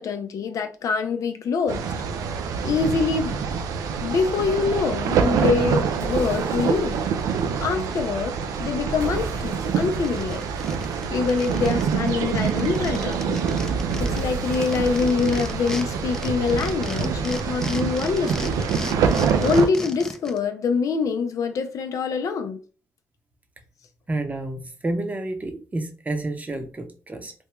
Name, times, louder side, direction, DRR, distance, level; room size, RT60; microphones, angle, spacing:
voice 1, 0.0-1.8 2.6-3.4 4.0-7.0 7.6-10.5 11.1-13.5 14.0-18.5 19.4-22.6, left 5 dB, 70° left, 0.5 m, -25 dB
sound 1, 1.7-19.7, right 6 dB, 80° right, 0.4 m, -26 dB
sound 2, 6.0-7.2 9.0-11.7 14.0-16.7, right 2 dB, 60° right, 1.3 m, -38 dB
sound 3, 9.5-9.6 9.9-11.8 12.1-12.2 12.4-15.9 16.1-20.4, left 1 dB, 10° left, 0.5 m, -35 dB
voice 2, 24.1-27.3, right 2 dB, 25° right, 0.8 m, -30 dB
3.4 x 2.2 x 3.0 m
cardioid pair, 65°, 6 cm